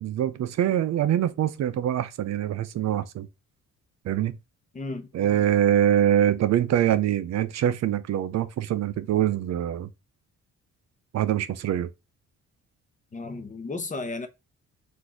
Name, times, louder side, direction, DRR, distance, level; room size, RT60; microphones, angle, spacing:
voice 1, 0.0-3.3 4.0-4.4 5.1-9.9 11.1-11.9, right 11 dB, 60° right, 0.5 m, -24 dB
voice 2, 4.7-5.1 13.1-14.3, left 3 dB, 25° left, 0.8 m, -33 dB
3.9 x 2.6 x 4.6 m
cardioid pair, 90°, 30 cm